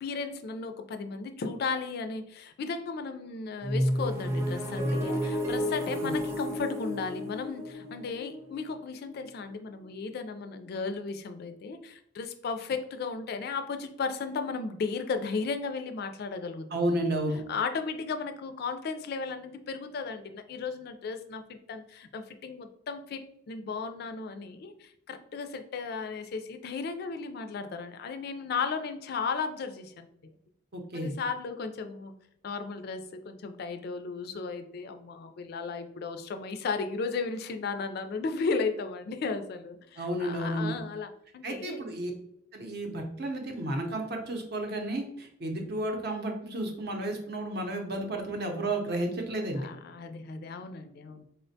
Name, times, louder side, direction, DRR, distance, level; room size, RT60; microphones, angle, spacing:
voice 1, 0.0-17.0 17.5-21.4 21.7-30.3 30.9-32.1 32.4-41.9 49.6-51.3, left 4 dB, 55° left, 8 dB, 0.3 m, -35 dB
sound 1, 3.6-9.4, equal, 15° right, 0.5 m, -31 dB
voice 2, 16.7-17.4 30.7-31.2 40.0-40.7 41.4-42.1 42.5-49.7, right 1 dB, 55° right, 3 dB, 0.7 m, -32 dB
4.2 x 2.1 x 2.6 m, 0.73 s
head